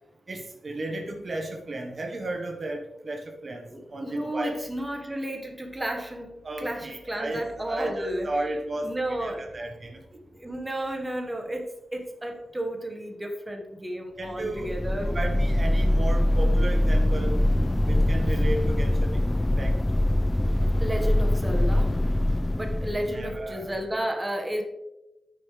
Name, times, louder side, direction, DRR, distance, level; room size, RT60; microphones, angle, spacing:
voice 1, 0.3-3.6 3.9-4.5 6.4-10.0 14.2-17.4 17.9-19.7 23.0-23.9, right 1 dB, 50° right, 1 dB, 1.2 m, -34 dB
voice 2, 3.7-6.3 6.6-8.3 8.8-9.4 10.3-15.1 20.8-21.9 22.5-24.6, right 1 dB, 15° right, 3 dB, 1.5 m, -32 dB
sound 1, 14.4-23.7, left 1 dB, 15° left, 0.3 m, -23 dB
9.5 x 6.5 x 3.3 m, 0.95 s
cardioid pair, 60°, 0 cm